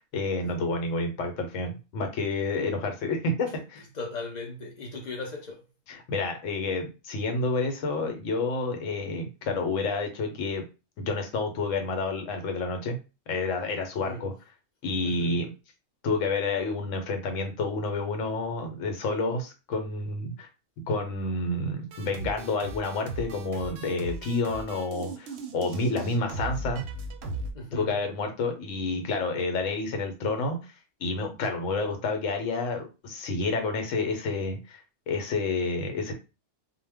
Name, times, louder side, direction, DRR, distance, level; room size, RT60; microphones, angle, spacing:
voice 1, 0.1-3.8 5.9-10.6 11.0-13.0 13.3-14.3 14.8-15.5 16.0-20.5 20.9-26.8 27.7-30.7 31.0-34.8 35.1-36.1, left 3 dB, 80° left, 1.0 m, -29 dB
voice 2, 3.9-5.6 14.1-14.2 15.0-15.4 27.5-27.9, left 2 dB, 60° left, 0.4 m, -37 dB
sound 1, 21.9-27.5, right 1 dB, 65° right, 0.7 m, -38 dB
2.2 x 2.1 x 3.4 m
omnidirectional pair, 1.3 m